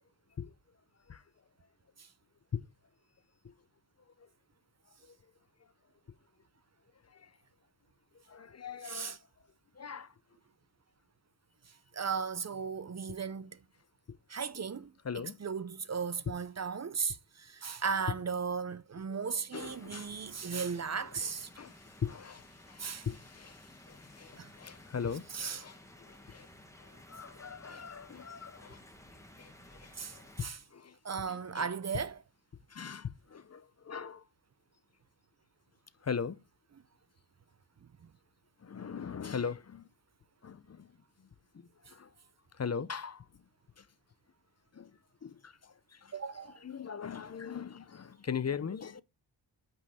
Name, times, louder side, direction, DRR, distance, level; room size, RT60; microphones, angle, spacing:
voice 1, 8.3-9.2 9.8-10.1 14.1-14.2 15.0-15.4 16.3-16.4 19.5-20.1 21.6-25.8 26.1-26.5 26.8-28.8 29.4-30.9 31.3-31.7 32.7-34.2 36.0-36.4 38.6-39.8 40.4-40.9 41.9-42.1 42.6-43.2 43.8-43.9 44.7-44.9 45.2-46.1 46.6-49.0, left 6 dB, 35° left, 0.6 m, -40 dB
voice 2, 8.8-9.2 11.9-13.6 14.3-21.5 22.8-23.1 24.4-24.5 25.3-25.6 29.9-30.6 31.0-32.2 46.1-46.6, right 6 dB, 40° right, 0.5 m, -36 dB
sound 1, 19.6-30.5, left 1 dB, 5° left, 1.5 m, -55 dB
8.2 x 5.5 x 4.2 m
cardioid pair, 75°, 43 cm